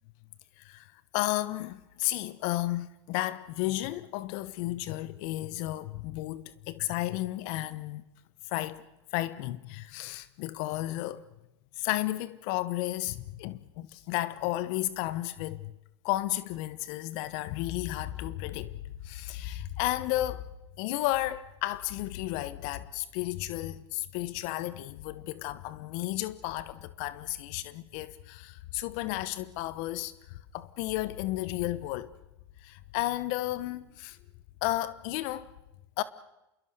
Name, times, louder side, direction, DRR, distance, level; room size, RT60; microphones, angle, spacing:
voice 1, 0.6-8.0 8.5-8.8 9.1-11.2 11.8-15.7 16.0-20.5 20.8-32.1 32.6-34.2 34.6-35.5 36.0-36.1, left 16 dB, 60° left, 1.1 m, -33 dB
27.5 x 22.0 x 6.7 m
hypercardioid pair, 95°, 14 cm